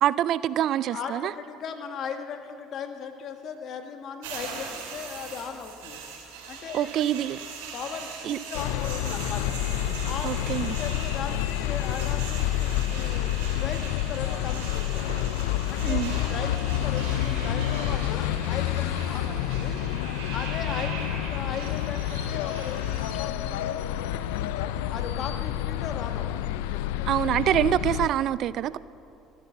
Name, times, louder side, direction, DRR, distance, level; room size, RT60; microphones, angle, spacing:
voice 1, 0.0-1.3 6.7-7.4 8.2-8.4 10.2-10.8 15.8-16.2 27.1-28.8, right 11 dB, 60° right, 18 dB, 0.4 m, -25 dB
voice 2, 0.9-6.0 6.5-7.1 7.7-9.6 10.0-10.4 10.6-13.3 13.6-15.1 15.7-19.8 20.3-23.9 24.8-26.6, left 6 dB, 55° left, 6 dB, 1.6 m, -37 dB
sound 1, 4.2-23.2, right 5 dB, 85° right, 2.7 m, -41 dB
sound 2, 8.5-28.1, left 12 dB, 85° left, 0.5 m, -29 dB
14.5 x 12.0 x 7.2 m, 2.7 s
supercardioid pair, 85°, 0 cm